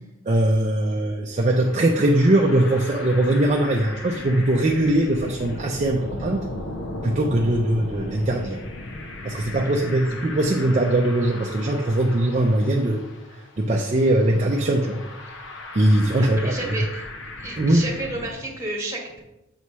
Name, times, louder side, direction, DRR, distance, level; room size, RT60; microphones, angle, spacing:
voice 1, 0.3-6.4 7.0-8.6 9.2-13.0 13.6-15.0 15.7-16.8 17.6-17.8, right 1 dB, 35° right, 0 dB, 0.5 m, -21 dB
sound 1, 1.4-18.3, left 2 dB, 60° left, 0.7 m, -37 dB
voice 2, 16.2-17.0 17.4-19.2, right 2 dB, 15° right, -1 dB, 1.4 m, -31 dB
7.0 x 3.2 x 5.5 m, 0.94 s
head